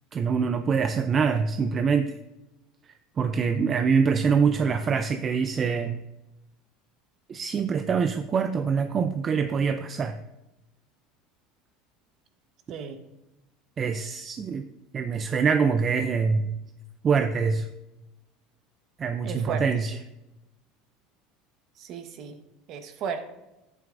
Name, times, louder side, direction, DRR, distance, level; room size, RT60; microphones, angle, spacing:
voice 1, 0.1-2.2 3.2-6.0 7.3-10.2 13.8-14.6 14.9-16.5 17.0-17.7 19.0-19.9, right 5 dB, 25° right, 8 dB, 0.4 m, -24 dB
voice 2, 19.2-19.8 21.8-22.4 22.7-23.3, right 6 dB, 45° right, 7 dB, 1.1 m, -35 dB
10.5 x 9.1 x 2.6 m, 0.96 s
cardioid pair, 150°, 0 cm